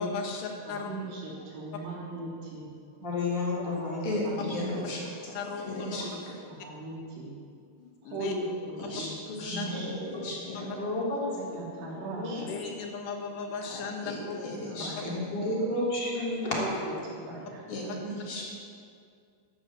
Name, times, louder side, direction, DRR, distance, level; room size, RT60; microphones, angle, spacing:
voice 1, 0.0-0.9 3.7-3.8 5.3-6.1 8.0-8.3 9.6-9.7 12.4-14.4, left 5 dB, 80° left, 2 dB, 3.6 m, -36 dB
voice 2, 0.7-2.7 3.6-4.9 6.0-6.2 6.4-7.3 8.0-9.1 9.5-9.9 11.4-12.5 14.2-15.5 16.6-16.8 17.0-18.4, right 2 dB, 85° right, -4 dB, 5.3 m, -39 dB
voice 3, 3.0-4.9 5.6-5.8 7.8-7.9 9.4-9.8 10.1-10.3 10.6-11.2 12.1-12.4 15.0-16.9, left 2 dB, 30° left, -5 dB, 3.5 m, -32 dB
voice 4, 4.0-5.3 5.7-6.0 8.8-10.7 13.7-14.2 14.4-15.1 17.7-17.8 18.2-18.4, left 2 dB, 60° left, -5 dB, 4.9 m, -35 dB
12.5 x 12.0 x 7.6 m, 2.3 s
omnidirectional pair, 4.9 m